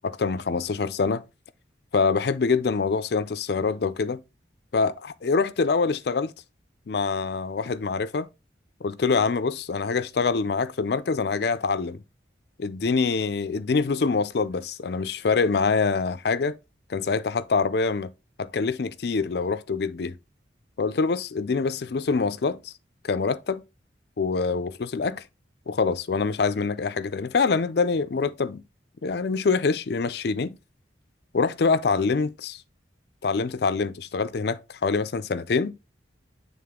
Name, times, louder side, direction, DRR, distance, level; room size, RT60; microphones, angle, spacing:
voice 1, 0.0-1.2 1.9-4.2 4.7-6.3 6.9-8.3 8.8-12.0 12.6-16.6 16.9-18.1 18.4-20.2 20.8-22.7 23.0-23.6 24.2-25.3 25.7-28.6 29.0-30.6 31.3-32.6 33.2-35.7, left 4 dB, 60° left, 0.4 m, -25 dB
8.7 x 3.6 x 3.6 m
head